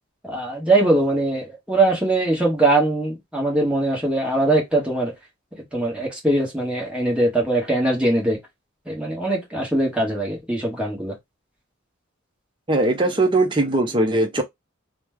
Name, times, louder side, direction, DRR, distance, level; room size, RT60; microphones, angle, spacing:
voice 1, 0.2-5.1 5.7-8.4 8.8-11.2, right 2 dB, 5° right, 1.2 m, -21 dB
voice 2, 12.7-14.4, right 2 dB, 20° right, 0.6 m, -20 dB
3.1 x 2.1 x 3.4 m
head